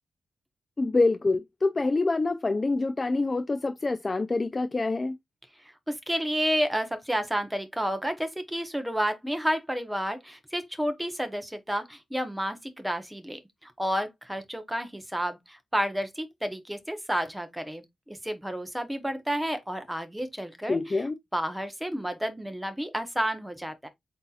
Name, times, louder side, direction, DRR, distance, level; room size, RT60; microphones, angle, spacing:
voice 1, 0.8-5.1 20.7-21.2, left 3 dB, 25° left, 0.3 m, -26 dB
voice 2, 5.9-21.0 21.3-23.9, equal, 5° right, 0.8 m, -31 dB
7.9 x 2.7 x 2.3 m
wide cardioid pair, 175°, 0 cm